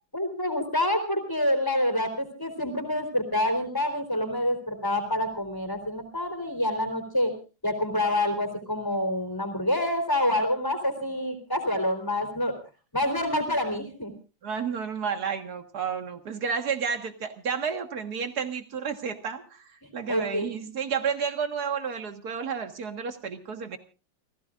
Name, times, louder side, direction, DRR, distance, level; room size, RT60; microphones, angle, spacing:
voice 1, 0.1-7.3 7.6-12.5 12.9-14.1 20.1-20.5, left 1 dB, 10° left, 7 dB, 3.7 m, -27 dB
voice 2, 14.4-23.8, right 6 dB, 60° right, 7 dB, 2.1 m, -31 dB
29.0 x 16.0 x 2.5 m, 0.33 s
omnidirectional pair, 1.9 m